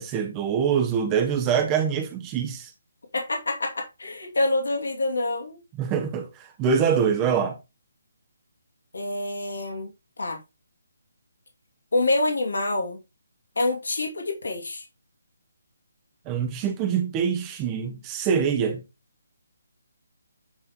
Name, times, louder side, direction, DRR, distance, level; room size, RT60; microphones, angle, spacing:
voice 1, 0.0-2.7 5.8-7.6 16.3-18.8, right 7 dB, 20° right, 1.0 m, -24 dB
voice 2, 3.1-5.6 8.9-9.9 10.2-10.4 11.9-13.0 13.6-14.8, left 2 dB, 75° left, 2.5 m, -26 dB
9.7 x 4.0 x 3.7 m
figure-of-eight pair, 150°, 0 cm